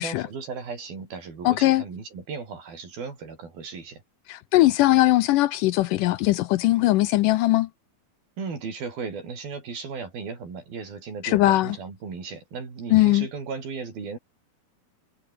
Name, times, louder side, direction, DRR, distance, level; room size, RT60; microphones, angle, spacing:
voice 1, 0.0-4.0 8.4-14.2, right 5 dB, 85° right, 7.6 m, -36 dB
voice 2, 1.4-1.8 4.3-7.7 11.2-11.8 12.9-13.3, left 17 dB, 75° left, 2.1 m, -20 dB
omnidirectional pair, 4.1 m